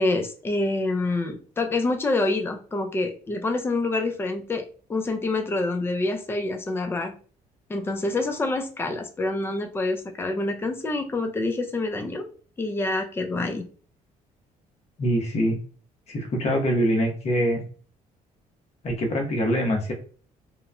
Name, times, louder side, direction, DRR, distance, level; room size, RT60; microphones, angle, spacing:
voice 1, 0.0-4.6 4.9-7.1 7.7-12.3 12.6-13.6, left 2 dB, 15° left, 5 dB, 0.4 m, -26 dB
voice 2, 15.0-15.6 16.1-17.6 18.8-19.9, equal, 45° left, 1 dB, 1.0 m, -24 dB
3.0 x 2.1 x 2.4 m, 0.40 s
cardioid pair, 105°, 15 cm